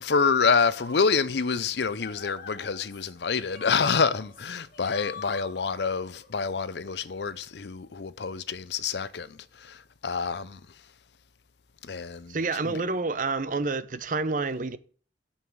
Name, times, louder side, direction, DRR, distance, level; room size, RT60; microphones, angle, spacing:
voice 1, 0.0-10.6 11.8-12.4 12.6-12.8, left 5 dB, 70° left, 0.6 m, -27 dB
sound 1, 0.6-6.5, left 5 dB, 50° left, 2.8 m, -45 dB
voice 2, 12.3-14.8, right 3 dB, 50° right, 0.7 m, -28 dB
8.9 x 5.6 x 7.8 m
head